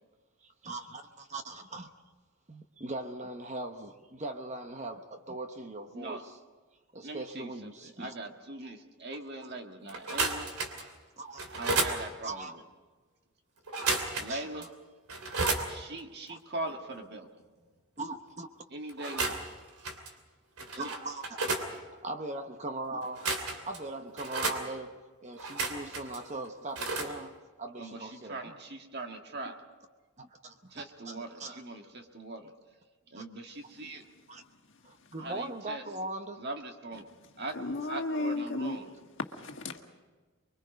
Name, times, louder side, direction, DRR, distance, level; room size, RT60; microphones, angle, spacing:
voice 1, 0.4-1.9 2.5-6.4 6.9-8.1 11.2-11.5 12.2-12.5 14.3-14.7 16.3-16.4 18.0-18.5 20.8-23.3 23.7-28.6 30.2-31.6 33.1-33.2 34.3-34.4 34.8-36.5, right 2 dB, 30° right, 6 dB, 0.9 m, -40 dB
voice 2, 7.0-7.5 8.0-10.5 11.5-12.6 14.2-14.6 15.7-17.3 18.7-19.4 20.7-20.8 27.8-29.6 30.7-32.5 33.1-34.0 35.2-35.8 36.4-37.0 37.4-37.5 37.9-38.9, right 2 dB, 45° right, 4 dB, 1.7 m, -41 dB
sound 1, 9.9-10.9 11.4-12.0 13.7-14.3 14.6-14.7 15.1-15.7 18.9-19.5 19.8-20.1 20.6-21.7 23.0-23.8 24.2-24.6 25.4-26.2 26.7-27.1, right 3 dB, 80° right, 2.8 m, -32 dB
voice 3, 37.5-38.8 39.4-39.8, left 2 dB, 55° left, 4 dB, 1.6 m, -33 dB
25.0 x 23.0 x 5.2 m, 1.3 s
head